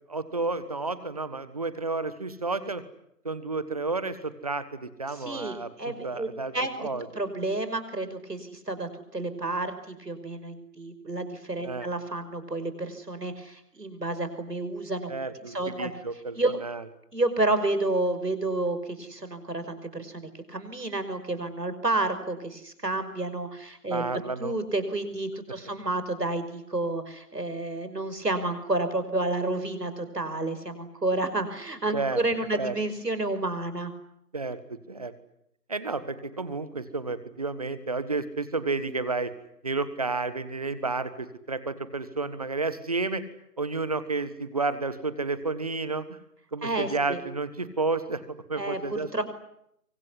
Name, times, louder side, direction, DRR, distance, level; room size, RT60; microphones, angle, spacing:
voice 1, 0.0-2.8 3.2-6.5 6.8-7.1 11.6-11.9 15.1-16.8 23.9-24.5 31.9-32.2 32.5-32.7 34.3-35.1 35.7-39.3 39.6-43.2 43.6-46.2 46.5-49.2, right 3 dB, 25° right, 14 dB, 1.4 m, -31 dB
voice 2, 5.2-6.3 6.5-6.9 7.2-15.1 15.5-15.9 16.4-16.6 17.1-24.1 24.4-33.9 46.6-47.2 48.6-48.8 49.1-49.2, right 2 dB, 80° right, 10 dB, 5.6 m, -30 dB
24.5 x 24.5 x 9.8 m, 0.77 s
figure-of-eight pair, 160°, 47 cm